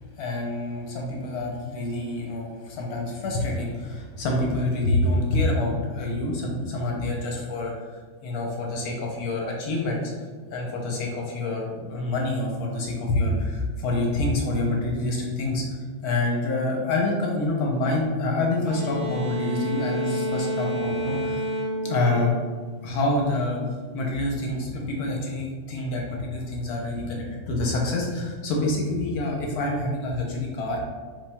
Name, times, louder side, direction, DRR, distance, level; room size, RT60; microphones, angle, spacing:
voice 1, 0.2-10.1 10.5-21.4 21.7-22.4 22.8-23.6 23.9-30.8, left 2 dB, 65° left, -1 dB, 1.0 m, -27 dB
sound 1, 18.6-23.1, equal, 50° right, 1.6 m, -30 dB
5.2 x 2.9 x 3.4 m, 1.5 s
omnidirectional pair, 2.2 m